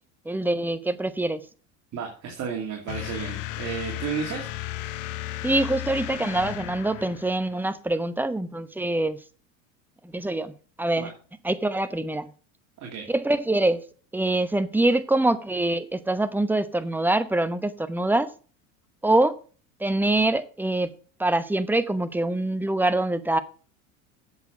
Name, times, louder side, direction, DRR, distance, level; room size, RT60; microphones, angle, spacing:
voice 1, 0.3-1.4 5.4-9.2 10.0-10.5 10.8-11.1 11.4-12.3 13.1-13.8 14.1-18.3 19.0-19.4 19.8-20.9 21.2-23.4, right 2 dB, 5° right, 0.9 m, -24 dB
voice 2, 1.9-4.5 11.0-11.1 12.8-13.1, right 6 dB, 45° right, 2.5 m, -32 dB
sound 1, 2.9-7.6, left 15 dB, 75° left, 0.9 m, -35 dB
8.1 x 6.9 x 6.2 m
hypercardioid pair, 80°, 39 cm